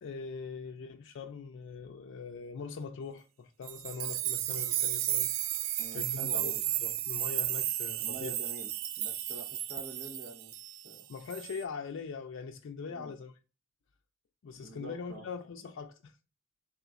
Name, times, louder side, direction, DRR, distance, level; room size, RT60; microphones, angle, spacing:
voice 1, 0.0-5.3 5.9-6.5 6.8-8.4 11.1-13.3 14.4-16.1, left 5 dB, 65° left, 0.4 m, -42 dB
sound 1, 3.7-11.0 11.3-11.6, right 12 dB, 85° right, 0.3 m, -33 dB
voice 2, 5.8-6.6 8.0-8.7 9.0-11.1 12.9-13.2 14.6-15.3, right 2 dB, 60° right, 0.8 m, -47 dB
3.9 x 3.6 x 2.3 m
head